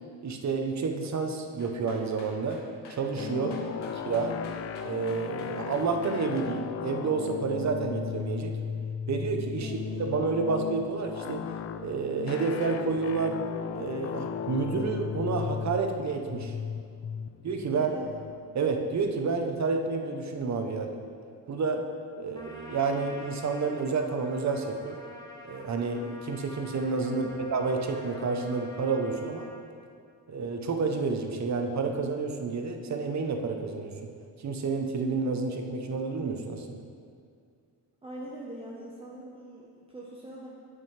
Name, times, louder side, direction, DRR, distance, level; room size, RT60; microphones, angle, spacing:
voice 1, 0.2-2.6 2.9-3.6 4.1-4.3 4.8-8.6 9.1-9.7 10.0-11.4 11.8-13.4 13.7-16.5 17.4-17.9 18.5-21.0 21.5-21.9 22.2-25.0 25.4-29.5 30.3-34.1 34.4-36.9, right 4 dB, 40° right, 5 dB, 0.8 m, -30 dB
sound 1, 1.6-6.5 11.9-12.0 12.3-12.8 13.1-13.2, left 3 dB, 80° left, 1.4 m, -50 dB
sound 2, 3.2-19.7, left 7 dB, 40° left, 0.4 m, -36 dB
voice 2, 3.5-4.0 9.6-9.8 17.7-18.1 38.0-40.5, right 1 dB, 15° right, -5 dB, 1.0 m, -43 dB
Trumpet, 22.3-29.6, left 1 dB, 10° left, 1.2 m, -48 dB
8.2 x 7.2 x 3.3 m, 2.2 s
cardioid pair, 95°, 41 cm